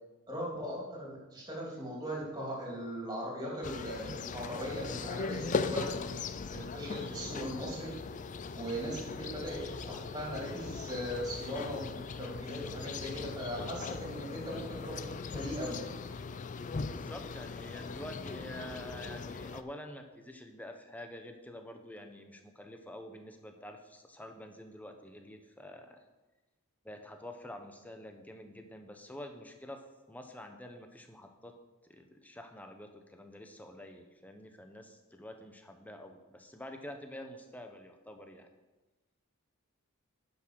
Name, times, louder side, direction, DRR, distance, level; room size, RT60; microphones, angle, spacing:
voice 1, 0.3-6.2 6.5-7.9 8.6-15.8, equal, 20° right, -3 dB, 3.0 m, -39 dB
sound 1, 3.6-19.6, left 4 dB, 35° left, 0.4 m, -39 dB
voice 2, 16.8-26.0 26.8-29.8 30.1-31.5 31.9-38.5, left 1 dB, 5° left, 5 dB, 0.9 m, -47 dB
10.5 x 6.1 x 6.3 m, 1.2 s
head